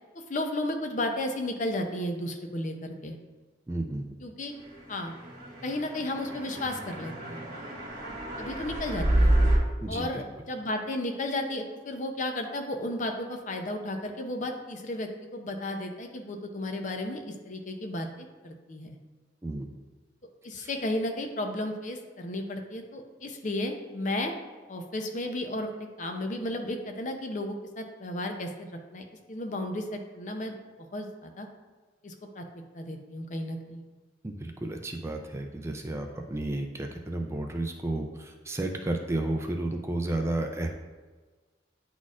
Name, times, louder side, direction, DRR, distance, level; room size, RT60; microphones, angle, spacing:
voice 1, 0.1-3.2 4.2-4.5 4.9-5.1 5.6-7.4 8.4-9.3 9.9-19.0 20.4-24.3 24.7-30.6 30.9-31.5 32.0-32.5 32.7-33.8, left 1 dB, 45° left, 4 dB, 0.6 m, -33 dB
voice 2, 3.7-4.1 9.8-10.3 19.4-19.7 20.6-20.7 34.2-40.7, right 1 dB, 15° right, 3 dB, 0.4 m, -32 dB
sound 1, 5.1-9.6, right 1 dB, 50° right, 1.6 m, -28 dB
9.5 x 4.1 x 2.4 m, 1.3 s
head